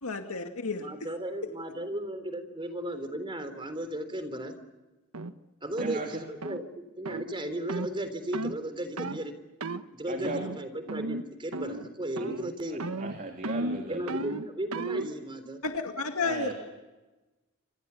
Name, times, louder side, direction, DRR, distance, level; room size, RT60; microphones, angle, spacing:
voice 1, 0.0-0.9 15.6-16.5, left 4 dB, 75° left, 4 dB, 2.2 m, -31 dB
voice 2, 0.8-4.6 5.6-9.3 9.9-12.9 13.9-15.6, right 1 dB, 25° right, 9 dB, 3.6 m, -35 dB
sound 1, 5.1-5.3 5.8-6.0 6.4-6.6 7.1-7.3 7.7-7.9 8.3-8.6 9.0-9.2 9.6-9.9 10.2-10.6 10.9-11.3 11.5-11.9 12.2-12.5 12.8-15.1, right 2 dB, 80° right, 1.3 m, -34 dB
voice 3, 5.8-6.1 10.1-10.4 12.2-12.3 12.7-14.2 16.2-16.5, right 2 dB, 40° right, 3 dB, 3.2 m, -36 dB
28.5 x 27.5 x 7.1 m, 1.1 s
head